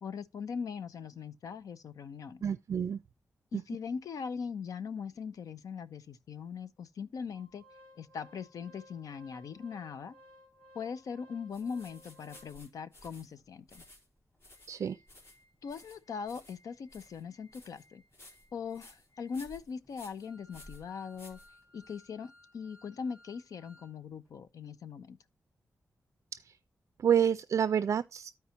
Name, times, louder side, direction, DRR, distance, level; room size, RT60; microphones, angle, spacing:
voice 1, 0.0-2.4 3.5-7.6 8.0-10.2 10.7-13.8 15.6-18.0 18.5-21.4 21.7-25.2, left 6 dB, 90° left, 0.7 m, -40 dB
voice 2, 2.4-3.0 3.5-3.6 14.7-15.0 26.3-26.5 27.0-28.3, right 8 dB, 60° right, 0.3 m, -29 dB
Organ, 7.3-12.9 13.4-13.5 13.7-13.9 14.3-23.9 24.3-24.4, left 1 dB, 25° left, 4.6 m, -61 dB
sound 1, 11.5-22.0, left 1 dB, 50° left, 3.5 m, -56 dB
14.0 x 4.7 x 2.9 m
wide cardioid pair, 150°, 6 cm